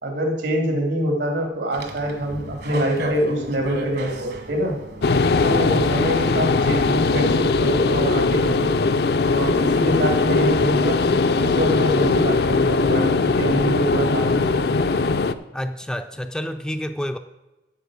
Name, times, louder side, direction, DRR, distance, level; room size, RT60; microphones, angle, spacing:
voice 1, 0.0-4.7 5.4-8.7 9.3-14.7, right 1 dB, 80° right, 2 dB, 2.7 m, -25 dB
sound 1, 1.7-6.9, right 1 dB, 65° right, 1.7 m, -33 dB
sound 2, 5.0-15.3, left 3 dB, 60° left, 0.5 m, -20 dB
voice 2, 15.5-17.2, equal, 5° left, 7 dB, 0.4 m, -29 dB
9.8 x 7.4 x 6.3 m, 1.0 s
head